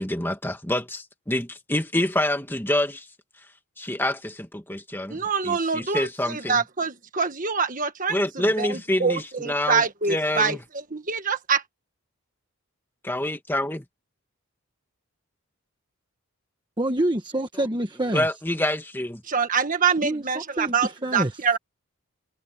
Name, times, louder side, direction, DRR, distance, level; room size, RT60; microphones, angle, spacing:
voice 1, 0.0-3.1 3.8-6.6 8.1-10.6 13.0-13.8 18.1-19.2, left 1 dB, 10° left, 2.0 m, -27 dB
voice 2, 5.1-11.6 19.3-21.6, right 5 dB, 40° right, 1.6 m, -25 dB
voice 3, 16.8-18.3 20.0-21.3, right 1 dB, 20° right, 1.3 m, -27 dB
head